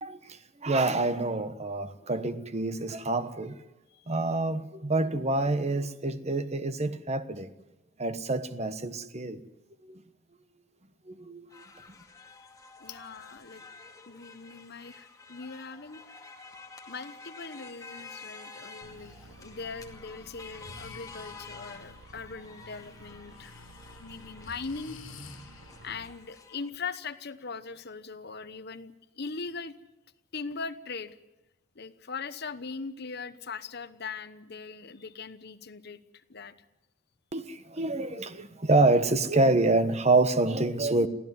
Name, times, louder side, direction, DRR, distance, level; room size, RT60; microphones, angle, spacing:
voice 1, 0.0-3.6 4.1-7.5 8.0-9.4 9.8-10.0 11.1-11.6 37.3-41.1, right 2 dB, 35° right, 1.1 m, -27 dB
sound 1, 11.5-26.7, left 4 dB, 15° left, 2.3 m, -49 dB
voice 2, 12.8-13.7 14.1-16.0 16.9-23.5 24.0-25.0 25.8-29.7 30.3-31.1 31.7-36.5, left 4 dB, 55° left, 1.1 m, -40 dB
sound 2, 18.8-26.2, right 1 dB, 75° right, 1.4 m, -52 dB
Breathing, 19.0-19.3 20.4-21.7 23.3-26.0, left 3 dB, 80° left, 2.8 m, -50 dB
23.5 x 15.5 x 9.6 m
head